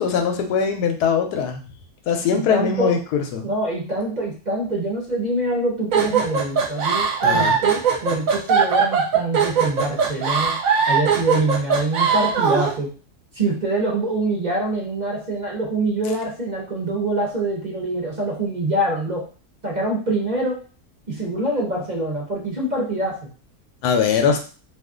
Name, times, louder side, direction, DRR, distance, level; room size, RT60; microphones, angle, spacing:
voice 1, 0.0-1.6 2.1-3.5 7.2-7.6 23.8-24.4, left 6 dB, 85° left, 4 dB, 1.2 m, -21 dB
voice 2, 2.3-2.9 3.4-10.5 10.9-12.9 13.3-19.2 19.6-20.6 21.1-23.3, right 2 dB, 35° right, -2 dB, 0.8 m, -25 dB
sound 1, 5.9-12.7, right 6 dB, 65° right, 1.0 m, -20 dB
2.7 x 2.4 x 3.6 m, 0.37 s
omnidirectional pair, 1.7 m